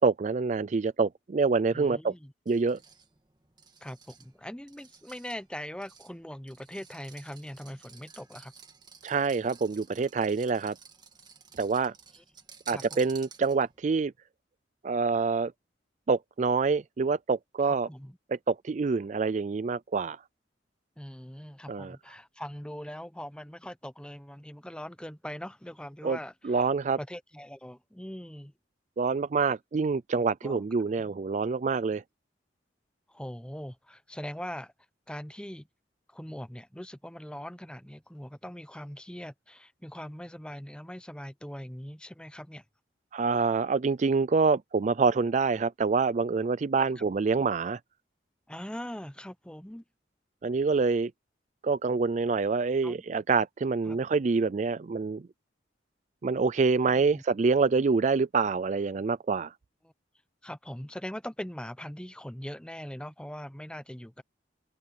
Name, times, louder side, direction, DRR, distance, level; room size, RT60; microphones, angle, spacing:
voice 1, 0.0-2.1 2.5-2.8 9.0-10.8 11.6-11.9 12.7-14.1 14.8-15.5 16.1-17.9 18.3-20.2 21.7-22.0 26.0-26.2 26.4-27.0 29.0-32.0 43.1-47.8 50.4-51.1 51.6-55.2 56.2-59.5, right 4 dB, 40° right, 0.4 m, -26 dB
voice 2, 1.7-2.3 3.8-8.5 12.7-13.0 17.6-18.2 21.0-26.6 27.0-28.5 29.5-29.6 30.4-30.7 30.9-31.1 33.1-34.7 35.1-35.7 36.1-42.6 48.5-49.8 52.8-53.0 53.8-54.0 56.9-57.2 59.8-59.9 60.4-64.2, equal, 5° left, 1.0 m, -41 dB
sound 1, 2.5-13.8, right 6 dB, 25° right, 1.7 m, -53 dB
open air
head